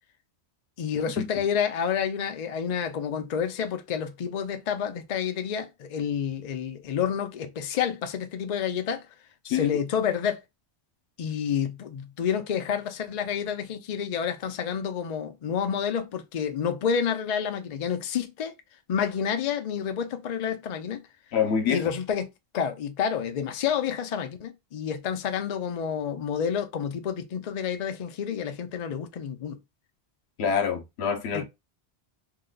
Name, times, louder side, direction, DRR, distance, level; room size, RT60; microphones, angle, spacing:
voice 1, 0.8-9.0 9.5-10.4 11.2-18.5 18.9-21.0 21.7-22.3 22.5-29.6 31.3-31.4, left 7 dB, 55° left, 0.5 m, -29 dB
voice 2, 21.3-21.8 30.4-31.4, left 7 dB, 80° left, 0.9 m, -26 dB
2.8 x 2.1 x 3.7 m
omnidirectional pair, 1.1 m